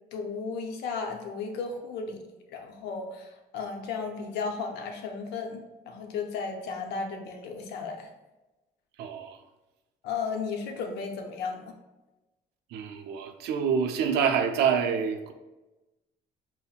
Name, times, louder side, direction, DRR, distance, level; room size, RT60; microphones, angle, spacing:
voice 1, 0.1-2.2 2.5-8.1 10.0-11.7, left 5 dB, 80° left, 0.6 m, -34 dB
voice 2, 9.0-9.4 12.7-15.3, right 7 dB, 80° right, 0.5 m, -27 dB
5.5 x 2.1 x 2.3 m
cardioid pair, 110°, 17 cm